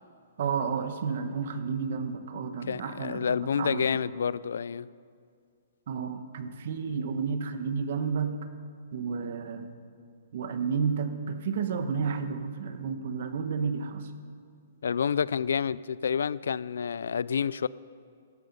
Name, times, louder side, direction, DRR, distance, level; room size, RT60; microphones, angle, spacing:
voice 1, 0.4-4.0 5.9-8.4 8.9-9.7 10.3-14.1, right 6 dB, 60° right, 1.1 m, -31 dB
voice 2, 2.7-4.9 14.8-17.7, left 7 dB, 85° left, 0.3 m, -29 dB
14.5 x 11.0 x 5.5 m
hypercardioid pair, 155°, 0 cm